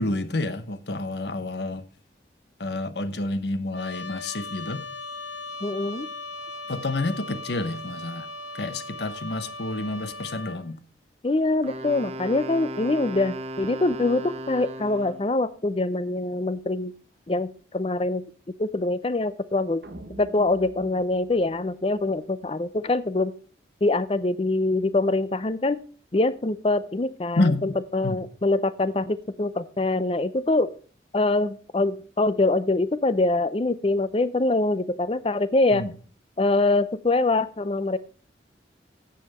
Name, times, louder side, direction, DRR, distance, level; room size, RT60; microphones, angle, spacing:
voice 1, 0.0-1.9 2.6-4.8 6.7-8.3 8.5-10.8 27.4-27.6 28.0-28.2 35.7-35.9, left 2 dB, 70° left, 0.9 m, -29 dB
Trumpet, 3.7-10.6, left 2 dB, 90° left, 1.2 m, -38 dB
voice 2, 5.6-6.1 11.2-16.9 17.3-17.5 17.7-18.2 18.6-19.8 20.2-23.3 23.8-25.8 26.1-30.7 31.1-35.8 36.4-38.0, left 2 dB, 30° left, 0.5 m, -24 dB
Wind instrument woodwind instrument, 11.6-15.3, right 1 dB, 35° right, 0.8 m, -36 dB
sound 1, 19.8-22.3, right 1 dB, 70° right, 1.1 m, -45 dB
9.2 x 6.9 x 5.5 m
head